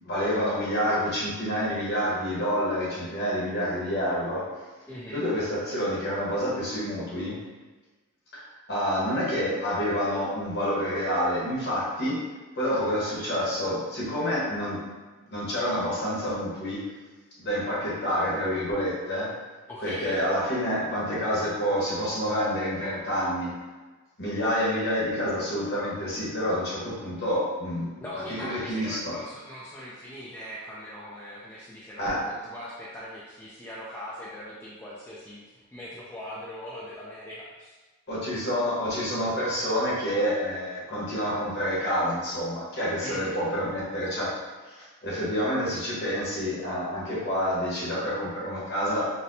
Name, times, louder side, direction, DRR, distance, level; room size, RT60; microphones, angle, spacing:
voice 1, 0.0-4.5 5.1-7.4 8.3-12.2 12.6-14.8 15.3-16.8 17.4-19.3 19.8-23.5 24.2-29.2 32.0-32.2 38.1-44.3 44.7-44.8 45.0-49.1, equal, 50° left, -7 dB, 1.1 m, -28 dB
voice 2, 4.9-5.2 19.7-20.2 28.0-37.8 43.0-43.4, equal, 10° left, -7 dB, 0.3 m, -41 dB
4.1 x 2.1 x 2.6 m, 1.3 s
head